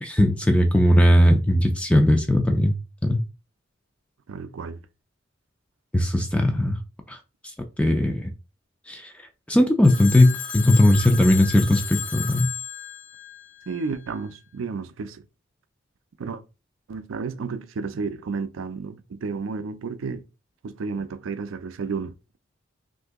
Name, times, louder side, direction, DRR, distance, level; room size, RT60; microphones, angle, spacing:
voice 1, 0.0-2.8 3.1-3.2 5.9-6.8 7.1-7.2 7.8-8.3 8.9-9.1 9.5-12.5, left 1 dB, 5° left, 0.3 m, -18 dB
voice 2, 4.3-4.8 13.7-15.2 16.2-16.4 16.9-20.2 20.6-22.1, right 4 dB, 75° right, 0.4 m, -32 dB
Telephone, 9.8-14.1, left 7 dB, 45° left, 0.6 m, -34 dB
2.7 x 2.6 x 3.5 m
head